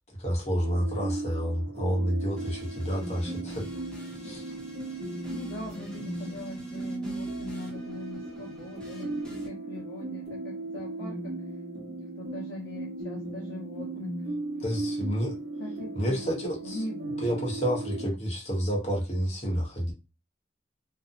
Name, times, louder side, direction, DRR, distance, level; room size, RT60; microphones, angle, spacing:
voice 1, 0.2-3.8 4.2-4.5 14.6-15.4 16.0-16.8 17.2-19.9, equal, 40° left, 0.9 m, -29 dB
sound 1, 0.6-18.1, right 2 dB, 60° right, 0.8 m, -37 dB
sound 2, 2.4-9.5, equal, 5° left, 0.5 m, -50 dB
voice 2, 5.3-11.3 12.2-14.1 15.6-16.2 16.6-17.4, left 1 dB, 85° left, 0.6 m, -41 dB
2.6 x 2.1 x 2.4 m
head